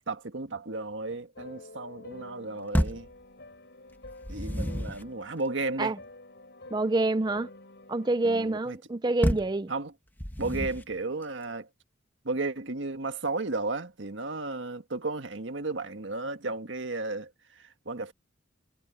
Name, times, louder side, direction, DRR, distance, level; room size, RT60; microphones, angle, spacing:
voice 1, 0.1-3.1 4.3-5.9 8.2-8.8 9.7-9.9 10.4-11.7 12.2-17.3 17.8-18.1, right 3 dB, 80° right, 1.6 m, -34 dB
sound 1, 1.4-8.7, left 2 dB, 60° left, 6.0 m, -49 dB
sound 2, 2.7-3.1 4.0-5.1 9.2-9.6 10.2-10.9, equal, 10° left, 2.0 m, -29 dB
voice 2, 6.7-7.5 7.9-9.7, right 2 dB, 20° right, 0.5 m, -27 dB
head